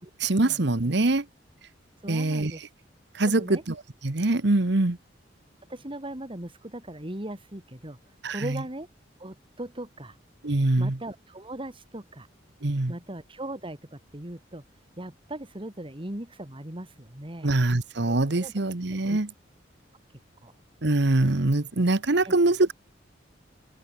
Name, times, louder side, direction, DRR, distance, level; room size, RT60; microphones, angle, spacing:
voice 1, 0.2-1.3 2.1-2.5 3.1-3.8 4.0-5.0 8.2-8.6 10.4-11.0 12.6-12.9 17.4-19.3 20.8-22.7, right 2 dB, 65° right, 1.3 m, -23 dB
voice 2, 2.0-2.6 3.3-3.6 5.7-8.0 8.3-8.9 9.2-10.2 10.8-12.3 12.9-14.6 15.0-17.5 18.1-18.2 18.4-18.5 19.1-19.2 20.4-20.5 22.2-22.4, right 1 dB, 30° right, 2.7 m, -38 dB
head